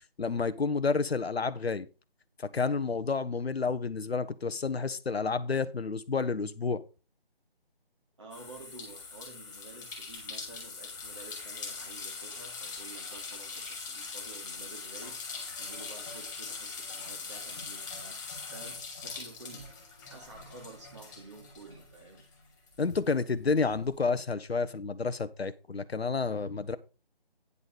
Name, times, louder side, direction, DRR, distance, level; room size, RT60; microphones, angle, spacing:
voice 1, 0.2-1.9 2.4-6.8 22.8-26.8, left 4 dB, 90° left, 0.9 m, -30 dB
voice 2, 8.2-22.3, right 3 dB, 30° right, 1.7 m, -51 dB
sound 1, 8.3-22.3 22.7-23.9, left 4 dB, 20° left, 2.3 m, -42 dB
9.7 x 4.0 x 7.1 m
figure-of-eight pair, 165°, 30 cm